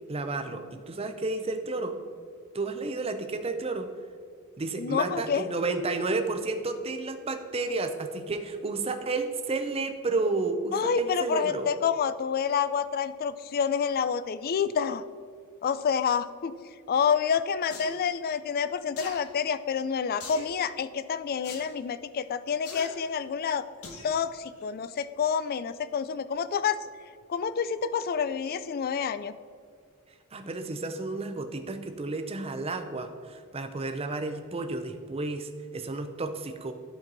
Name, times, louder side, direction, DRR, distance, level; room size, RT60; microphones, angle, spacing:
voice 1, 0.1-2.0 2.5-3.9 4.6-11.7 30.3-36.7, right 3 dB, 25° right, 7 dB, 0.6 m, -31 dB
voice 2, 4.8-5.4 10.7-15.0 15.6-16.6 16.9-23.7 24.0-26.8 27.3-29.3, left 7 dB, 45° left, 14 dB, 0.3 m, -28 dB
sound 1, 17.7-17.9 19.0-19.2 20.2-20.5 21.4-21.6 22.6-22.9 23.8-24.1 24.6-24.7, left 4 dB, 90° left, 1.1 m, -40 dB
11.5 x 4.5 x 4.0 m, 2.2 s
head